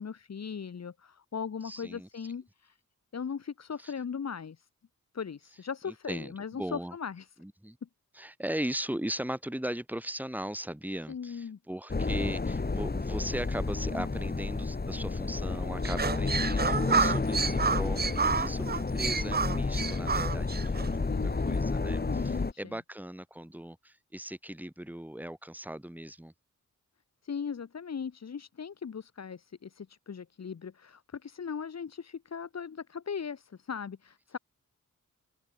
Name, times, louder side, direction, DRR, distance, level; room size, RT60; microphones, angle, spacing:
voice 1, 0.0-2.8 3.1-4.7 5.1-7.3 7.8-7.9 11.1-11.6 21.1-22.8 27.2-34.4, left 6 dB, 50° left, 1.6 m, -39 dB
voice 2, 1.6-2.1 3.8-3.9 5.9-6.9 7.4-7.8 8.2-21.1 21.4-26.3, right 1 dB, 5° right, 5.4 m, -38 dB
sound 1, 11.9-22.5, left 3 dB, 30° left, 2.3 m, -31 dB
sound 2, 15.8-20.9, right 5 dB, 30° right, 0.7 m, -29 dB
open air
cardioid pair, 80°, 33 cm